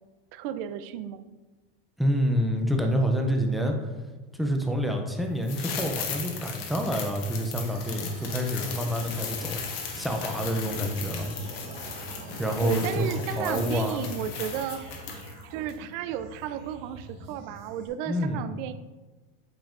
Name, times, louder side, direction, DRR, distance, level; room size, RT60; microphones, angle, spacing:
voice 1, 0.3-1.2 12.6-18.7, right 9 dB, 60° right, 12 dB, 0.5 m, -34 dB
voice 2, 2.0-3.9 4.3-11.3 12.4-14.0 18.1-18.5, equal, ahead, 2 dB, 0.3 m, -28 dB
sound 1, 5.4-15.4 15.7-15.8, left 6 dB, 75° left, 1.2 m, -37 dB
sound 2, 7.7-17.9, right 2 dB, 40° right, 1.4 m, -44 dB
8.7 x 5.2 x 2.5 m, 1.2 s
supercardioid pair, 155°, 30 cm